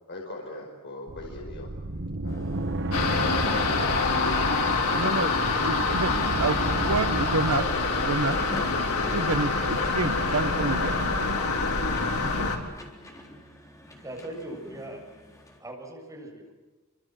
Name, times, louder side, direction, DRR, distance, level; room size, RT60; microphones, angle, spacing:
voice 1, 0.1-2.7 3.7-6.3, left 2 dB, 50° left, -1 dB, 5.0 m, -41 dB
sound 1, 1.1-12.3, right 1 dB, 55° right, 1.3 m, -35 dB
sound 2, 2.3-15.6, left 1 dB, 15° left, 3.9 m, -46 dB
sound 3, 2.9-12.6, left 3 dB, 80° left, 4.3 m, -26 dB
voice 2, 4.9-5.3 5.6-7.7 8.0-8.4 9.1-10.9 12.2-12.5, right 3 dB, 75° right, 9 dB, 1.3 m, -29 dB
voice 3, 13.9-15.0 15.6-16.5, right 1 dB, 15° right, 0 dB, 7.6 m, -40 dB
27.5 x 26.0 x 7.8 m, 1.2 s
head